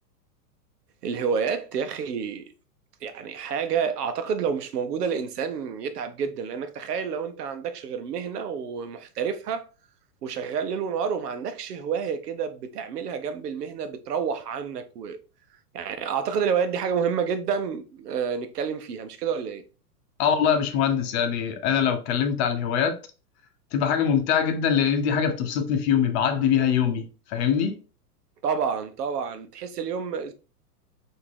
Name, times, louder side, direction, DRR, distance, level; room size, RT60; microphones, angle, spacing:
voice 1, 1.0-2.5 3.0-9.7 10.2-15.2 15.7-19.6 28.4-30.3, right 6 dB, 80° right, 0.8 m, -29 dB
voice 2, 20.2-22.9 23.7-27.8, left 8 dB, 40° left, 0.8 m, -23 dB
4.7 x 2.8 x 3.6 m
hypercardioid pair, 125°, 47 cm